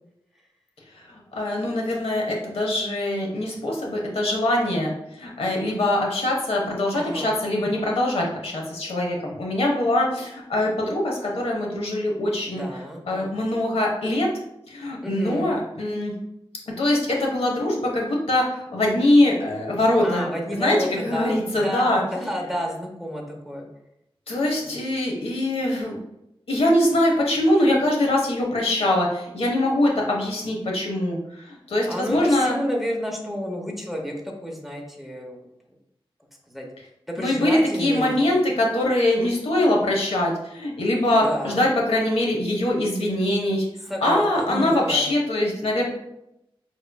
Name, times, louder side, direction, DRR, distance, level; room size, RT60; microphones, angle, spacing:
voice 1, 1.1-12.7 13.1-14.3 14.7-16.1 16.8-18.4 18.7-20.2 20.6-22.0 24.3-26.0 26.5-31.2 31.7-32.6 37.2-43.6 44.0-45.9, left 1 dB, 85° left, -1 dB, 0.9 m, -23 dB
voice 2, 6.9-7.3 12.5-13.3 15.0-15.6 20.0-23.7 24.6-24.7 31.9-35.4 36.5-36.7 37.1-38.2 41.1-41.7 43.9-45.0, equal, ahead, 0 dB, 0.8 m, -31 dB
5.6 x 3.1 x 2.2 m, 0.84 s
wide cardioid pair, 95°, 10 cm